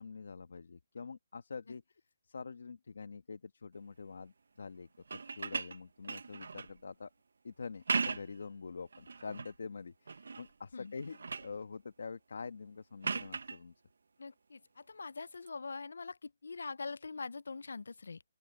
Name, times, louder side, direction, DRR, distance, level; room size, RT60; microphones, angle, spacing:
voice 1, 0.0-1.8 2.2-7.1 7.4-13.7, left 5 dB, 70° left, 1.2 m, -46 dB
sound 1, 5.0-6.8 7.7-8.4 8.9-9.6 10.1-10.5 10.9-11.6 13.0-13.6 15.3-15.5, right 4 dB, 75° right, 0.8 m, -38 dB
voice 2, 14.2-18.2, left 4 dB, 85° left, 0.3 m, -43 dB
open air
hypercardioid pair, 180°, 0 cm